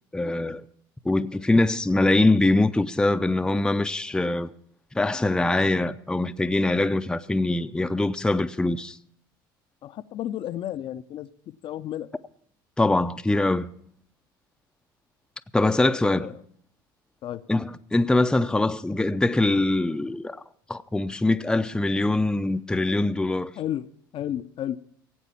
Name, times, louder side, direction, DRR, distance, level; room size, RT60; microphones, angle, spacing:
voice 1, 0.1-0.6 1.0-4.5 4.9-9.0 12.8-13.7 15.5-16.3 17.5-20.4 20.7-23.5, left 2 dB, 5° left, 0.6 m, -23 dB
voice 2, 9.8-12.1 16.2-16.3 17.2-17.4 23.6-23.9 24.1-24.8, left 11 dB, 50° left, 0.6 m, -32 dB
17.0 x 8.2 x 5.8 m
hypercardioid pair, 70°, 11 cm